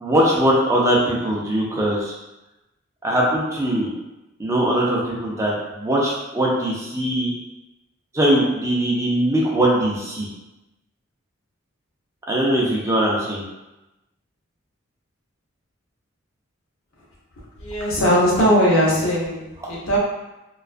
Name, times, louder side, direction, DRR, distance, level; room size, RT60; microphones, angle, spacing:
voice 1, 0.0-2.1 3.0-3.9 4.4-7.3 8.1-10.3 12.3-13.4, right 1 dB, 15° right, -4 dB, 0.4 m, -21 dB
voice 2, 17.6-20.0, equal, 80° left, -5 dB, 0.8 m, -19 dB
2.3 x 2.2 x 2.4 m, 0.99 s
head